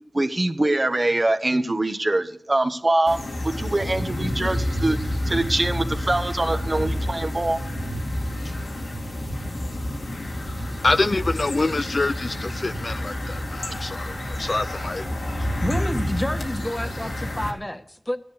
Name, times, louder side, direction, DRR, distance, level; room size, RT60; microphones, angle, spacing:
voice 1, 0.1-3.2 3.6-5.0 5.3-7.6, right 2 dB, 40° right, 1.3 m, -23 dB
sound 1, 3.1-17.5, left 1 dB, 80° left, 2.4 m, -29 dB
voice 2, 10.8-15.1, left 2 dB, 55° left, 0.5 m, -25 dB
voice 3, 15.6-18.2, left 1 dB, 20° left, 1.4 m, -29 dB
13.5 x 10.0 x 7.0 m
cardioid pair, 40°, 0 cm